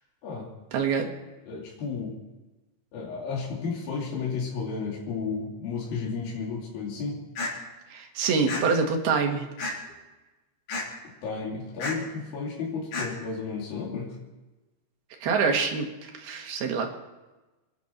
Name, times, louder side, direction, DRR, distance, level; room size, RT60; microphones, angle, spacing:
voice 1, 0.7-1.1 7.9-9.5 15.2-16.9, right 5 dB, 70° right, 3 dB, 3.8 m, -26 dB
voice 2, 1.4-2.1 2.9-7.2 11.2-14.2, left 5 dB, 65° left, -4 dB, 4.4 m, -33 dB
sound 1, 7.4-7.5 8.5-8.6 9.6-9.9 10.7-10.8 11.8-12.0 12.9-13.1, left 3 dB, 85° left, 6.0 m, -30 dB
27.0 x 10.5 x 4.4 m, 1.1 s
omnidirectional pair, 4.6 m